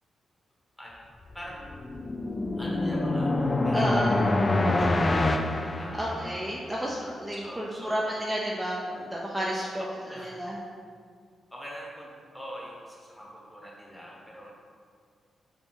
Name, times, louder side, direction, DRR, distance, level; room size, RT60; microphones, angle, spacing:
sound 1, 1.4-6.6, left 2 dB, 35° left, 0.3 m, -26 dB
voice 1, 2.6-4.0 4.5-5.2 5.8-6.4 7.3-8.1 9.5-10.4 11.5-14.5, equal, 10° left, -4 dB, 1.3 m, -44 dB
voice 2, 3.7-4.1 6.0-9.8 10.2-10.6, equal, 15° right, -4 dB, 0.6 m, -31 dB
3.4 x 2.8 x 4.4 m, 2.1 s
hypercardioid pair, 45°, 0 cm